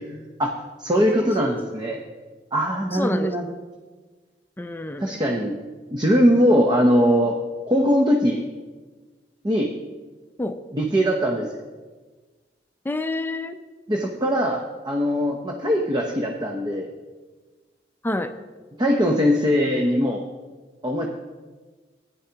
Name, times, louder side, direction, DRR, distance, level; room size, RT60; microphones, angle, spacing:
voice 1, 0.4-2.0 2.5-3.5 5.0-5.6 5.9-7.4 7.7-8.4 9.4-9.7 10.7-11.6 13.9-16.9 18.8-20.2 20.8-21.1, equal, 25° right, 1 dB, 0.7 m, -21 dB
voice 2, 2.9-3.3 4.6-5.1 10.4-10.5 12.9-13.6 18.0-18.3, left 2 dB, 10° left, 8 dB, 0.5 m, -27 dB
15.0 x 9.9 x 2.9 m, 1.3 s
head